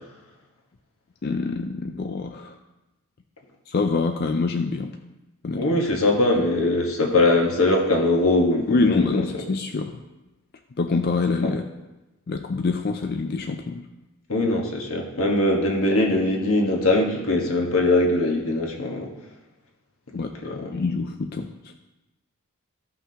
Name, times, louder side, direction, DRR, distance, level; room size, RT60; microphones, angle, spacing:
voice 1, 1.2-2.5 3.7-4.9 5.4-5.6 8.7-10.0 10.8-11.6 12.3-13.8 20.1-21.5, left 4 dB, 45° left, 5 dB, 0.4 m, -25 dB
voice 2, 5.5-9.2 11.4-11.5 14.3-19.1 20.2-20.8, left 2 dB, 75° left, 0 dB, 1.4 m, -21 dB
14.0 x 5.7 x 2.8 m, 1.0 s
head